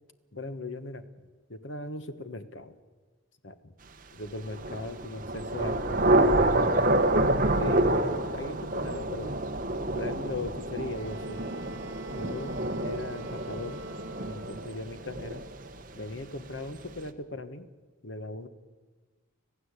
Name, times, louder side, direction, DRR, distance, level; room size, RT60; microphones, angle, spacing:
voice 1, 0.3-1.1 1.5-2.8 3.4-3.6 4.1-6.8 7.6-9.4 9.9-11.4 12.1-12.5 12.8-13.8 14.3-15.4 15.9-17.7 18.0-18.5, left 2 dB, 60° left, 10 dB, 1.4 m, -38 dB
Thunder / Rain, 4.4-16.0, right 1 dB, 40° right, 1.2 m, -28 dB
Wind instrument woodwind instrument, 10.9-14.9, right 2 dB, 60° right, 1.9 m, -45 dB
26.0 x 15.5 x 8.3 m, 1.4 s
head